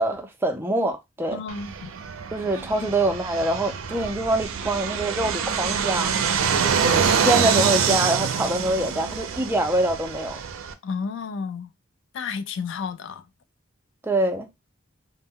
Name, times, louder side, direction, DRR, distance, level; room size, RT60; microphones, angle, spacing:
voice 1, 0.0-1.4 2.3-6.1 6.6-10.4 14.0-14.5, right 1 dB, 10° right, 0.4 m, -25 dB
voice 2, 1.3-1.9 2.8-2.9 6.7-7.2 10.8-11.7 12.1-13.2, left 5 dB, 60° left, 0.3 m, -32 dB
Fixed-wing aircraft airplane, 1.5-10.7, right 6 dB, 80° right, 0.4 m, -25 dB
2.1 x 2.1 x 3.5 m
head